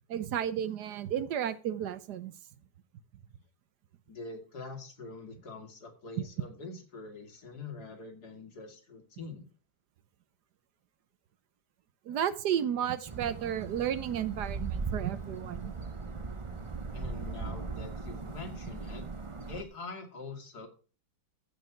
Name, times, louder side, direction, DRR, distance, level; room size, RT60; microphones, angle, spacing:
voice 1, 0.1-2.3 12.1-15.7, right 9 dB, 65° right, 14 dB, 1.3 m, -32 dB
voice 2, 4.1-9.5 16.9-19.1 19.5-20.7, left 3 dB, 55° left, 4 dB, 2.7 m, -44 dB
sound 1, 13.1-19.6, right 4 dB, 50° right, 0.3 m, -39 dB
15.0 x 4.9 x 5.8 m, 0.36 s
omnidirectional pair, 2.0 m